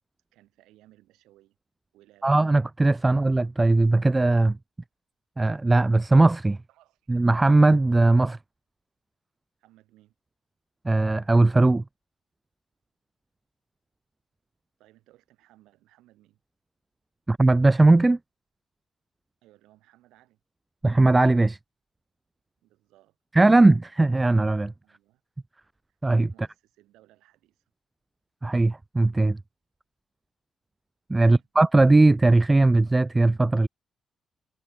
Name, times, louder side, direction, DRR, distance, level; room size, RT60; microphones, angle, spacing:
voice 1, 0.3-1.6 1.9-2.4 6.7-7.1 9.6-10.1 14.8-16.4 19.4-20.4 22.6-23.2 24.8-25.2 25.9-26.0 26.3-27.6 31.2-31.5, right 16 dB, 80° right, 7.4 m, -60 dB
voice 2, 2.2-4.6 5.4-6.6 7.1-8.4 10.9-11.8 17.3-18.2 20.8-21.6 23.3-24.7 26.0-26.3 28.4-29.4 31.1-33.7, right 2 dB, 20° right, 0.5 m, -19 dB
hypercardioid pair, 50°, 0 cm